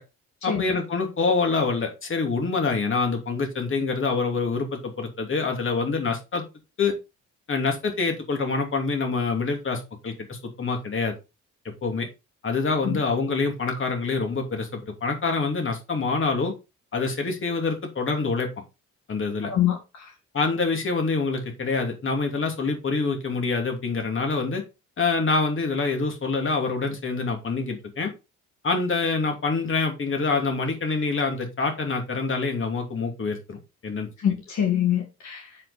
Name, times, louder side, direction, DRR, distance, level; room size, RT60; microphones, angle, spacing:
voice 1, 0.4-6.4 6.8-6.9 7.5-11.1 11.8-12.1 12.4-16.5 16.9-18.5 19.1-19.5 20.3-24.6 25.0-28.1 28.6-34.1, left 4 dB, 40° left, 2.8 m, -26 dB
voice 2, 19.4-20.1 34.2-35.6, left 10 dB, 65° left, 2.0 m, -25 dB
7.4 x 5.5 x 4.1 m
cardioid pair, 90°, 30 cm